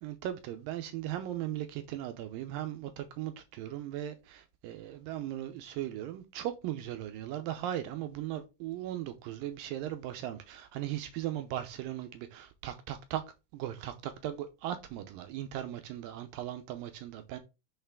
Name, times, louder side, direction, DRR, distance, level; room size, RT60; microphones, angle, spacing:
voice 1, 0.0-13.2 13.5-17.4, right 12 dB, 80° right, 2.1 m, -38 dB
6.5 x 5.6 x 3.7 m
omnidirectional pair, 4.7 m